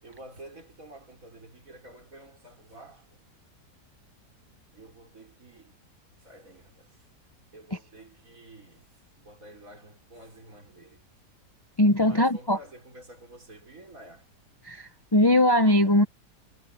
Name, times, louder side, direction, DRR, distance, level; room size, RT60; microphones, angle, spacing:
voice 1, 0.0-3.2 4.7-5.8 6.2-7.1 7.5-11.0 12.0-14.3, right 1 dB, 50° right, 5.4 m, -50 dB
voice 2, 11.8-12.6 14.6-16.0, left 1 dB, 25° left, 0.6 m, -21 dB
omnidirectional pair, 1.8 m